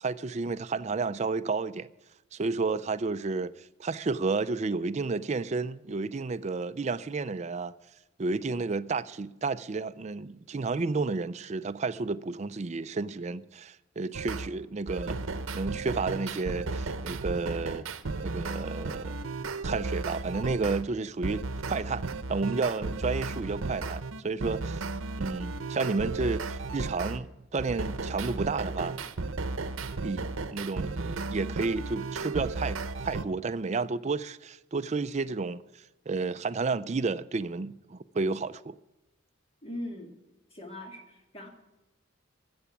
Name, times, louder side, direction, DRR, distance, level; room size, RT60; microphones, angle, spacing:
voice 1, 0.0-1.9 2.3-7.7 8.2-15.2 15.5-17.9 18.2-19.2 19.6-21.4 21.7-22.0 22.3-24.8 25.2-29.0 30.0-30.2 30.5-32.8 33.0-35.6 36.1-38.8, right 4 dB, 35° right, 0.4 m, -31 dB
sound 1, 14.1-14.5 14.9-20.8 21.2-27.2 27.6-33.2, right 3 dB, 70° right, 0.8 m, -34 dB
voice 2, 39.6-40.1 40.5-41.5, left 1 dB, 30° left, 2.1 m, -40 dB
15.5 x 7.0 x 9.9 m
head